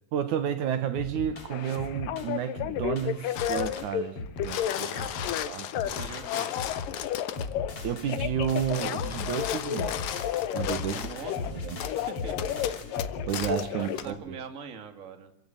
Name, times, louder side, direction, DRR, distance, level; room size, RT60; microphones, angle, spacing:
voice 1, 0.1-4.9 5.5-5.8 7.8-10.0 10.5-11.1 11.6-11.8 13.3-14.4, right 9 dB, 70° right, 11 dB, 2.7 m, -31 dB
sound 1, 1.0-14.2, left 3 dB, 45° left, 3.5 m, -38 dB
Telephone, 1.5-4.0 4.4-5.9 6.2-7.8 8.1-11.5 11.8-14.0, left 11 dB, 85° left, 2.7 m, -32 dB
sound 2, 3.3-3.9 4.3-7.5 8.4-11.2 11.8-11.9 12.4-13.6 14.0-14.1, left 11 dB, 70° left, 2.4 m, -37 dB
voice 2, 4.7-5.4 5.8-6.6 10.9-11.6 12.1-12.5 13.7-15.3, right 5 dB, 25° right, 7 dB, 2.1 m, -43 dB
27.0 x 16.0 x 7.8 m, 0.78 s
omnidirectional pair, 3.8 m